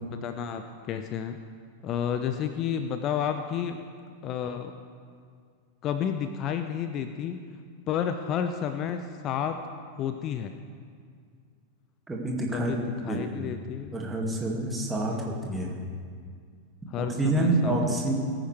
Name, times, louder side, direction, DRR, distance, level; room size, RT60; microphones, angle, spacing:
voice 1, 0.1-1.4 1.8-3.8 4.2-4.7 5.8-7.4 7.9-9.6 10.0-10.5 12.5-14.1 15.1-15.2 16.9-18.1, left 8 dB, 35° left, 7 dB, 0.6 m, -31 dB
voice 2, 12.1-12.7 13.1-13.5 13.9-15.7 17.0-18.1, right 2 dB, 10° right, -1 dB, 2.2 m, -28 dB
20.0 x 10.0 x 3.4 m, 2.1 s
figure-of-eight pair, 90°, 0 cm